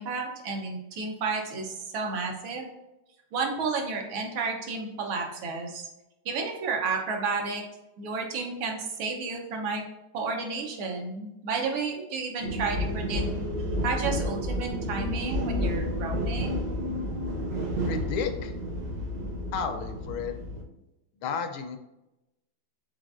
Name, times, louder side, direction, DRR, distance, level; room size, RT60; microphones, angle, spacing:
voice 1, 0.0-2.7 3.3-5.9 6.2-7.6 8.0-9.8 10.1-13.2 13.8-16.6, right 4 dB, 85° right, 2 dB, 1.7 m, -31 dB
sound 1, 12.4-20.6, equal, 65° right, 1.3 m, -30 dB
voice 2, 17.9-18.5 19.5-20.3 21.2-21.8, left 6 dB, 85° left, 7 dB, 1.4 m, -32 dB
5.0 x 4.0 x 2.5 m, 0.95 s
omnidirectional pair, 2.2 m